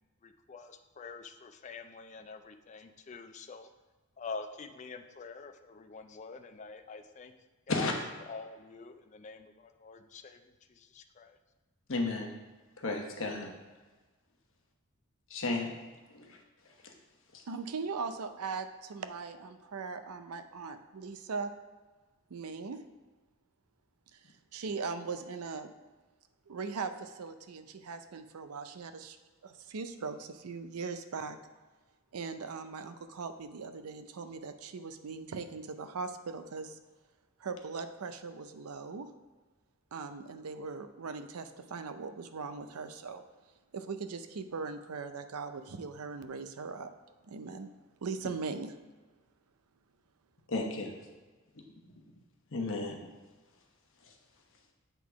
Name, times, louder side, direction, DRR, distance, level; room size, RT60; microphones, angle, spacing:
voice 1, 0.2-3.7 4.2-7.3 7.7-7.9 8.3-10.4 10.7-11.4, left 4 dB, 30° left, 7 dB, 0.4 m, -46 dB
voice 2, 11.9-12.3 12.8-13.5 15.3-15.7 16.1-16.3 50.5-50.9 52.5-53.0, left 3 dB, 60° left, 1 dB, 1.0 m, -32 dB
voice 3, 17.5-21.5 22.3-22.8 24.1-25.7 26.5-29.2 29.4-31.4 32.1-36.8 37.4-39.1 39.9-43.2 43.7-46.9 47.3-47.7 48.0-48.7, right 4 dB, 85° right, 9 dB, 0.5 m, -40 dB
8.2 x 3.7 x 4.7 m, 1.3 s
head